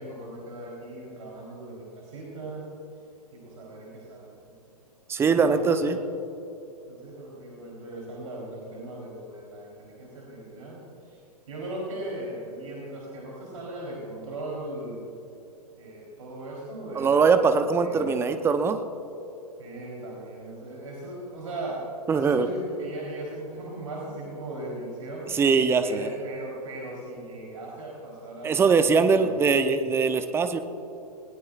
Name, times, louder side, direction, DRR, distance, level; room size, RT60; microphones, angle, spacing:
voice 1, 0.0-2.7 3.3-4.5 5.3-5.9 6.9-11.2 11.5-15.1 15.8-18.5 19.6-25.3 25.8-29.4, right 1 dB, 55° right, -4 dB, 3.8 m, -38 dB
voice 2, 5.1-6.0 16.9-18.8 22.1-22.5 25.3-26.1 28.4-30.6, right 5 dB, 10° right, 9 dB, 0.7 m, -22 dB
20.5 x 18.5 x 2.5 m, 3.0 s
figure-of-eight pair, 110°, 20 cm